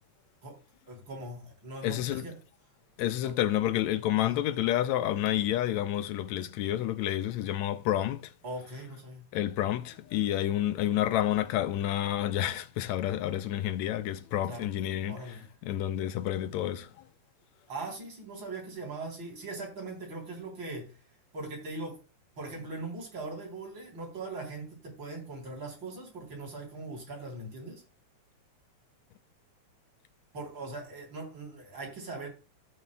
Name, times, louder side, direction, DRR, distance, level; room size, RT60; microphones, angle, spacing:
voice 1, 0.9-2.4 3.2-3.3 4.2-4.4 8.4-9.2 14.4-14.6 15.1-15.5 17.7-20.9 21.3-22.0 22.4-27.8 30.3-32.3, right 2 dB, 40° right, 4.2 m, -40 dB
voice 2, 1.8-2.3 3.0-8.3 9.3-16.9, left 12 dB, 80° left, 1.8 m, -29 dB
16.0 x 6.4 x 2.3 m
omnidirectional pair, 3.4 m